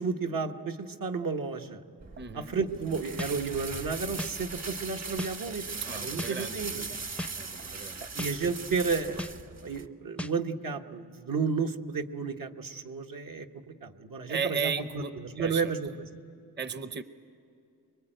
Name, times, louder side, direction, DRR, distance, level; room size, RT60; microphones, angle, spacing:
voice 1, 0.0-1.8 2.3-7.0 8.1-15.9, right 5 dB, 70° right, 4 dB, 1.4 m, -32 dB
sound 1, 2.0-9.9, right 4 dB, 50° right, 1.4 m, -39 dB
voice 2, 2.2-2.6 5.8-6.7 6.9-7.0 7.4-8.0 14.3-15.7 16.6-17.0, right 6 dB, 30° right, 12 dB, 0.8 m, -35 dB
sound 2, 3.2-3.3 4.2-4.3 5.2-5.3 6.2-6.3 7.2-7.3 8.2-8.3 9.2-9.3 10.2-10.3, left 1 dB, 5° left, 0.5 m, -35 dB
25.5 x 23.0 x 9.1 m, 2.6 s
cardioid pair, 70°, 35 cm